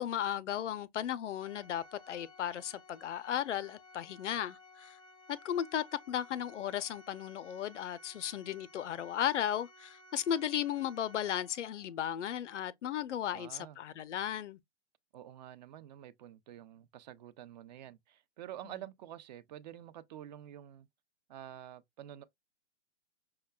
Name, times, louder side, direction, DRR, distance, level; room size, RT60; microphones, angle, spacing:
voice 1, 0.0-5.0 5.3-14.6, left 10 dB, 85° left, 0.5 m, -35 dB
Organ, 1.4-12.0, left 2 dB, 15° left, 0.5 m, -57 dB
voice 2, 13.3-13.8 15.1-20.9 21.3-22.2, right 11 dB, 40° right, 0.5 m, -48 dB
5.7 x 2.2 x 2.2 m
hypercardioid pair, 130°, 35 cm